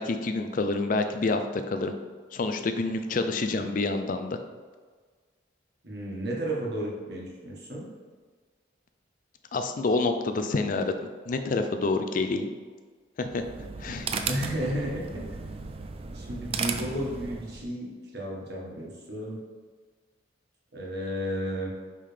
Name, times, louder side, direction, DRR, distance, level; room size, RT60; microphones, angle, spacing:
voice 1, 0.0-1.9 2.3-4.4 9.5-11.0 11.3-12.5 13.2-13.4 13.8-14.1, left 3 dB, 45° left, 7 dB, 0.4 m, -27 dB
voice 2, 5.8-7.8 14.3-15.1 16.1-19.4 20.7-21.7, equal, 60° right, -3 dB, 1.6 m, -33 dB
sound 1, 13.2-17.7, right 5 dB, 30° right, 0.3 m, -35 dB
5.6 x 4.9 x 3.4 m, 1.5 s
head